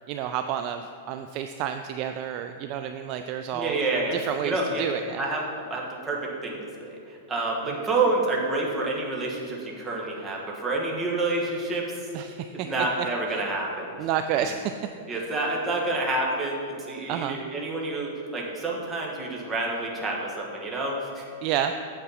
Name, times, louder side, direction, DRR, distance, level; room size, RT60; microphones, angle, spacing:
voice 1, 0.1-3.8 4.1-5.2 12.1-12.7 13.0-13.1 13.3-13.4 14.0-14.7 15.1-15.2 17.1-17.4 21.4-21.7, right 10 dB, 40° right, 7 dB, 0.3 m, -30 dB
voice 2, 3.5-4.1 4.4-4.8 5.2-12.1 12.5-13.9 14.4-14.5 15.1-21.2, right 2 dB, 15° right, -2 dB, 1.4 m, -28 dB
8.2 x 7.4 x 4.1 m, 2.5 s
supercardioid pair, 145°, 0 cm